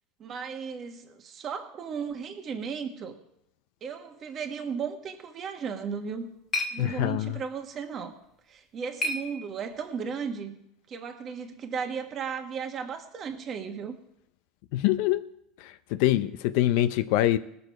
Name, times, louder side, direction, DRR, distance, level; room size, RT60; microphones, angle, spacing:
voice 1, 0.2-3.2 3.8-6.3 6.7-8.1 8.5-10.6 10.9-14.0, right 6 dB, 30° right, 5 dB, 1.3 m, -35 dB
sound 1, 5.8-10.0, left 2 dB, 20° left, 1.3 m, -37 dB
voice 2, 6.8-7.4 14.7-15.2 15.6-17.4, left 14 dB, 65° left, 11 dB, 0.5 m, -25 dB
19.5 x 6.9 x 4.7 m, 0.77 s
supercardioid pair, 155°, 0 cm